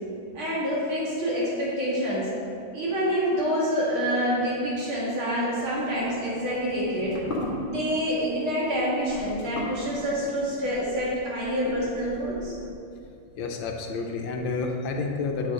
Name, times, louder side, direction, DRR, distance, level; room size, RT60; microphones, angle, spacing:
voice 1, 0.3-2.3 2.7-7.2 7.6-12.6, equal, 80° right, -6 dB, 2.8 m, -27 dB
sound 1, 5.7-12.7, left 1 dB, 30° left, 1.4 m, -38 dB
voice 2, 13.4-15.5, left 4 dB, 75° left, 2 dB, 1.3 m, -29 dB
9.0 x 6.1 x 3.7 m, 2.6 s
omnidirectional pair, 2.3 m